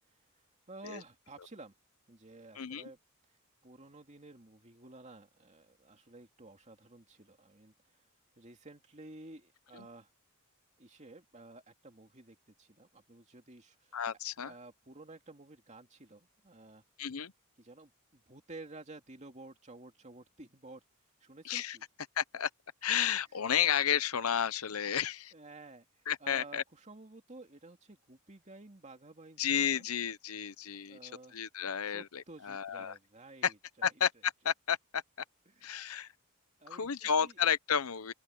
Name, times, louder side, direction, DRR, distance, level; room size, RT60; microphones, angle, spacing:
voice 1, 0.7-1.7 2.1-3.0 3.6-7.7 8.4-10.1 10.8-14.0 14.4-16.8 17.6-20.8 21.2-21.8 25.3-29.9 30.9-31.4 31.9-33.9 35.5-35.7 36.6-37.4, right 2 dB, 35° right, 2.4 m, -52 dB
voice 2, 13.9-14.5 17.0-17.3 21.4-21.8 22.2-22.5 22.8-25.3 26.1-26.6 29.4-32.9 33.4-33.5 33.8-35.0 35.6-36.1 36.7-38.1, left 8 dB, 80° left, 0.8 m, -32 dB
open air
head